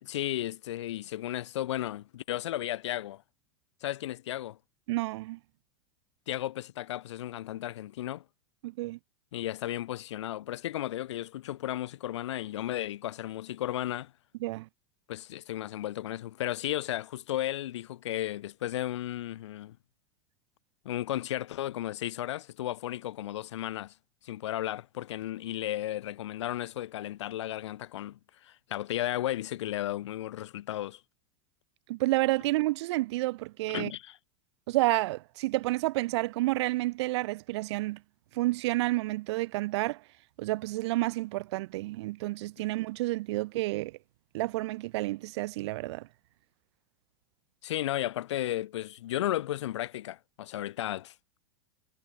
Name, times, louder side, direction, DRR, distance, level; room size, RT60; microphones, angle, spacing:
voice 1, 0.0-3.2 3.8-4.6 6.3-8.2 9.3-14.1 15.1-19.8 20.8-23.9 24.2-31.0 33.7-34.2 42.6-42.7 47.6-51.1, left 13 dB, 75° left, 3.3 m, -34 dB
voice 2, 4.9-5.4 8.6-9.0 14.4-14.7 31.9-33.9 34.7-38.0 38.3-40.0 40.4-44.0 44.3-46.1, right 19 dB, 65° right, 6.8 m, -30 dB
hypercardioid pair, 100°, 15 cm